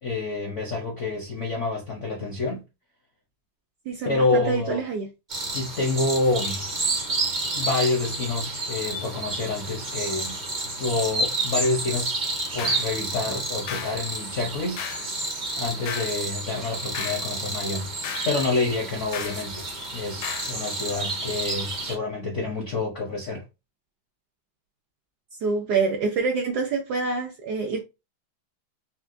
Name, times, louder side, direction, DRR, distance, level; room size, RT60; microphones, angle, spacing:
voice 1, 0.0-2.6 4.0-4.8 5.4-6.6 7.5-10.4 10.8-14.8 15.6-17.9 18.3-19.6 19.9-23.4, left 3 dB, 70° left, 0.7 m, -28 dB
voice 2, 3.9-5.1 25.4-27.8, right 4 dB, 75° right, 0.9 m, -26 dB
sound 1, 5.3-22.0, right 2 dB, 55° right, 0.5 m, -30 dB
sound 2, 12.6-12.9 13.7-14.0 14.8-15.1 15.9-16.2 16.9-17.3 18.0-18.4 19.1-19.4 20.2-20.5, left 8 dB, 85° left, 1.4 m, -34 dB
4.4 x 2.1 x 2.5 m
omnidirectional pair, 2.2 m